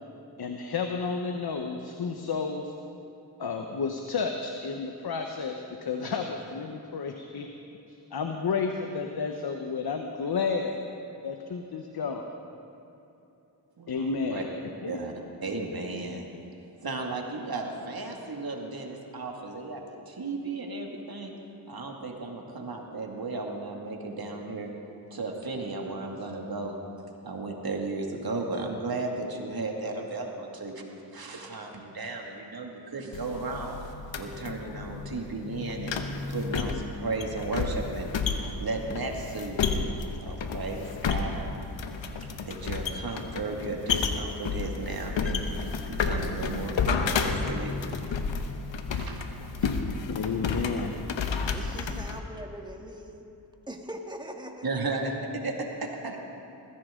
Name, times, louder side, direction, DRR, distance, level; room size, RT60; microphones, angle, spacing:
voice 1, 0.4-2.7 3.4-7.5 7.9-10.8 11.2-12.2 13.9-14.5 14.8-14.9 50.1-51.0, left 5 dB, 55° left, 4 dB, 1.1 m, -31 dB
voice 2, 13.8-14.4 14.9-15.1 15.4-16.3 16.8-21.3 21.7-24.7 25.1-26.8 27.2-33.8 34.2-36.0 36.3-38.1 38.4-39.8 40.2-41.5 42.5-45.4 45.9-47.8 48.9-49.2 49.6-49.7 51.4-51.6 54.6-56.2, right 3 dB, 55° right, 1 dB, 2.3 m, -34 dB
sound 1, 33.1-52.2, left 5 dB, 85° left, 1.0 m, -31 dB
voice 3, 51.5-53.3 53.7-55.0, right 1 dB, 10° right, 2 dB, 1.8 m, -41 dB
20.5 x 15.5 x 3.8 m, 2.8 s
cardioid pair, 55°, 44 cm